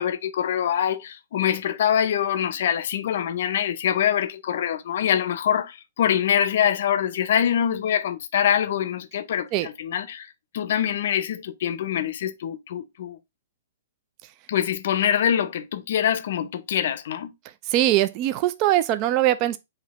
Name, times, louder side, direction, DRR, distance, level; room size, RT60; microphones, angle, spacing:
voice 1, 0.0-13.2 14.5-17.3, left 9 dB, 60° left, 0.6 m, -24 dB
voice 2, 17.6-19.6, right 13 dB, 30° right, 0.3 m, -21 dB
4.1 x 2.8 x 4.0 m
hypercardioid pair, 155°, 0 cm